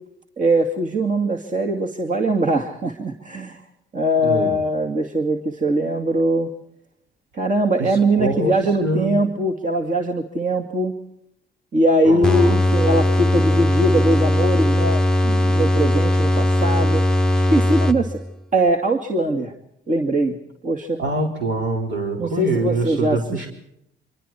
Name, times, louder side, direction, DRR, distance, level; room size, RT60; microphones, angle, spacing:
voice 1, 0.4-3.6 3.9-6.5 7.4-10.9 11.7-17.0 17.3-18.2 18.5-19.5 19.9-20.4 20.6-21.0 22.2-23.5, right 1 dB, 40° right, 2 dB, 2.3 m, -21 dB
voice 2, 7.8-8.5 8.8-9.2 12.0-12.6 21.0-23.5, right 2 dB, 75° right, 2 dB, 4.9 m, -24 dB
sound 1, 12.2-18.3, left 1 dB, 5° left, 0.9 m, -19 dB
26.0 x 25.0 x 4.4 m, 0.76 s
cardioid pair, 90°, 20 cm